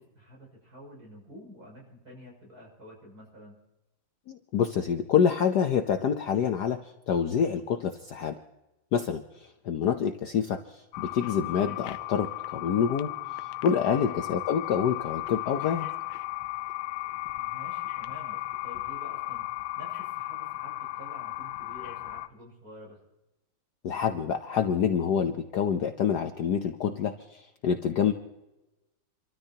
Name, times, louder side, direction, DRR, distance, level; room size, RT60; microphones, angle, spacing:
voice 1, 0.0-3.5 14.0-14.2 17.3-19.4 19.8-23.0, left 1 dB, 45° right, -2 dB, 7.1 m, -49 dB
voice 2, 4.3-8.3 8.9-13.1 13.4-15.9 23.8-28.1, left 7 dB, 60° left, 7 dB, 1.1 m, -27 dB
sound 1, 10.9-22.3, left 17 dB, 80° left, 1.5 m, -35 dB
29.0 x 13.5 x 2.8 m, 0.98 s
omnidirectional pair, 2.4 m